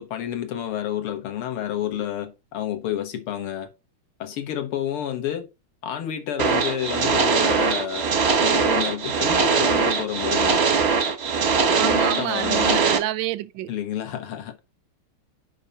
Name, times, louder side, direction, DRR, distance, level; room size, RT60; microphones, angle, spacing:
voice 1, 0.0-3.7 4.2-5.5 5.8-8.1 8.4-10.7 11.7-12.8 13.7-14.6, left 10 dB, 80° left, 2.1 m, -29 dB
sound 1, 6.4-13.0, right 5 dB, 50° right, 0.7 m, -21 dB
voice 2, 11.7-13.7, right 15 dB, 75° right, 1.1 m, -28 dB
5.7 x 5.3 x 5.5 m
omnidirectional pair, 2.4 m